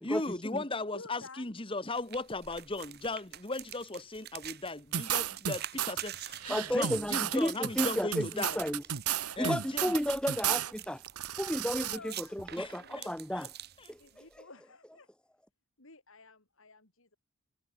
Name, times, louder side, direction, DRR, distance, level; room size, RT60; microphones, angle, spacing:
voice 1, 0.0-8.6 9.4-10.0 12.6-13.5 13.8-13.9, left 2 dB, 25° left, 1.5 m, -37 dB
voice 2, 0.9-1.4 11.8-12.3 12.8-13.4 14.0-15.1 15.8-17.2, left 3 dB, 60° left, 3.2 m, -52 dB
sound 1, 1.9-14.4, right 12 dB, 45° right, 1.0 m, -47 dB
sound 2, 4.9-6.0 6.4-10.7 11.1-12.0, right 10 dB, 85° right, 1.1 m, -33 dB
voice 3, 6.5-8.8 9.2-11.0 11.4-13.5 13.9-14.4, equal, 5° left, 1.2 m, -33 dB
head